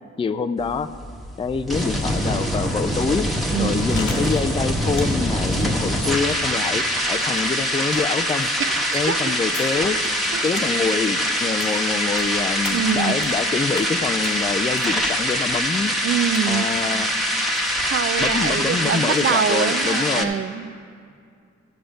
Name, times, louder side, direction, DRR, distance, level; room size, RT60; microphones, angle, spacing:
voice 1, 0.2-0.9 1.4-8.5 8.9-10.0 10.4-15.9 16.5-17.1 18.2-20.4, left 4 dB, 20° left, 10 dB, 0.4 m, -25 dB
sound 1, 0.6-20.2, equal, ahead, 1.3 m, -24 dB
voice 2, 3.5-3.9 5.5-5.9 8.6-9.3 10.3-10.4 12.7-13.3 16.0-16.7 17.8-20.7, right 8 dB, 45° right, 13 dB, 0.5 m, -25 dB
Chewing mastication, 3.6-18.6, left 4 dB, 85° left, 1.3 m, -41 dB
15.0 x 6.9 x 5.1 m, 2.3 s
cardioid pair, 70°, 30 cm